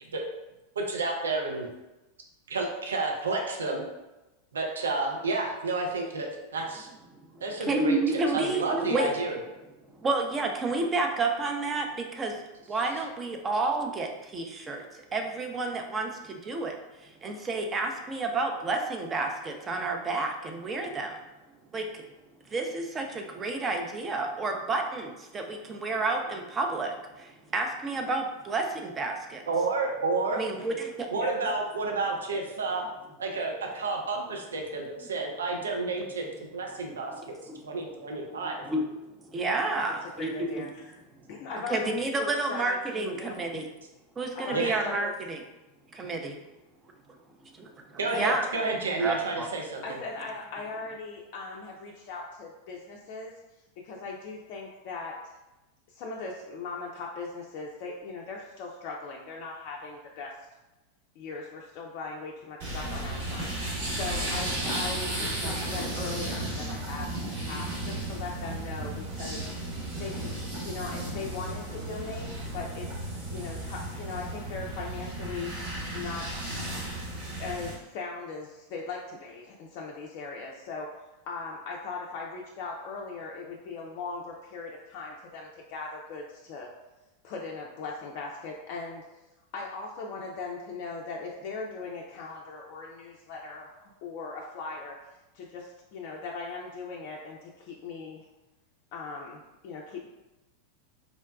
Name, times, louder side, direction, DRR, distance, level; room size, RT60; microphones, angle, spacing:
voice 1, 0.8-1.7 2.5-3.8 4.5-6.9 7.4-9.4 29.5-30.4 31.1-32.9 33.2-36.3 36.5-37.3 37.6-38.6 44.5-44.8 48.0-50.0, right 3 dB, 75° right, 1 dB, 0.5 m, -30 dB
voice 2, 7.3-9.1 9.9-12.4 12.7-21.2 21.7-22.0 22.5-29.4 30.3-31.1 37.5-37.6 38.4-38.8 39.2-40.7 41.7-43.7 44.2-45.4 45.9-46.4 47.5-48.4 49.0-49.5, right 3 dB, 25° right, 3 dB, 0.5 m, -30 dB
voice 3, 39.8-41.0 41.3-42.2 42.5-42.8 43.2-43.4 44.3-45.1 49.8-53.3 53.8-55.1 55.9-60.3 61.2-69.4 70.0-70.3 70.6-76.2 77.4-80.9 81.3-86.7 87.2-89.2 89.5-95.0 95.3-98.3 98.9-100.1, left 4 dB, 50° left, -1 dB, 0.3 m, -39 dB
sound 1, 62.6-77.7, right 1 dB, 60° right, 1.1 m, -34 dB
3.8 x 2.1 x 2.3 m, 1.0 s
figure-of-eight pair, 90°, 0 cm